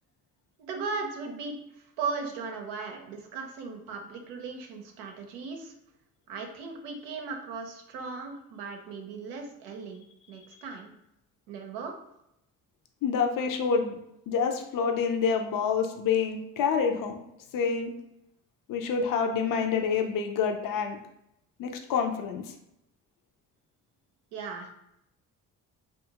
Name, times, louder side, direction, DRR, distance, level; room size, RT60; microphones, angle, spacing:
voice 1, 0.6-1.6 2.0-5.7 6.3-10.9 11.5-12.0 24.3-24.7, right 4 dB, 90° right, 3 dB, 0.6 m, -37 dB
voice 2, 13.0-14.0 14.3-17.2 17.5-17.9 18.7-21.0 21.6-22.4, left 6 dB, 55° left, 4 dB, 0.5 m, -27 dB
2.6 x 2.4 x 2.8 m, 0.83 s
supercardioid pair, 60°, 41 cm